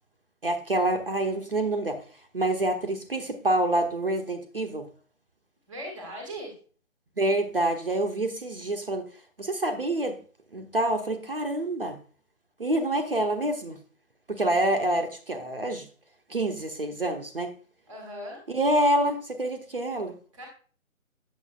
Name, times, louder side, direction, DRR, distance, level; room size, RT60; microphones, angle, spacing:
voice 1, 0.4-2.0 2.3-4.9 7.2-9.0 9.4-10.2 10.5-12.0 12.6-13.8 14.3-15.9 16.3-17.5 18.5-20.1, right 1 dB, 40° right, 0.7 m, -27 dB
voice 2, 5.7-6.5 17.9-18.4 20.3-20.5, equal, ahead, 0.9 m, -38 dB
8.3 x 6.9 x 2.3 m
figure-of-eight pair, 150°, 42 cm